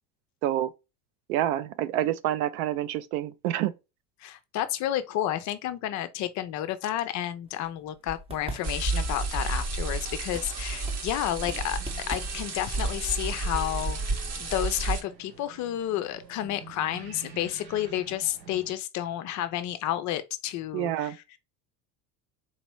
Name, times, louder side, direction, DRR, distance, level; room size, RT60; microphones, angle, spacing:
voice 1, 1.3-3.7 20.7-21.2, right 12 dB, 60° right, 0.6 m, -28 dB
voice 2, 4.2-11.8 12.1-21.4, left 12 dB, 40° left, 0.5 m, -31 dB
sound 1, 7.5-14.1, right 1 dB, 10° right, 0.8 m, -44 dB
sound 2, 8.6-15.0, right 3 dB, 30° right, 1.0 m, -31 dB
sound 3, 11.4-18.7, right 6 dB, 90° right, 0.8 m, -49 dB
4.0 x 3.0 x 3.0 m
figure-of-eight pair, 65°, 49 cm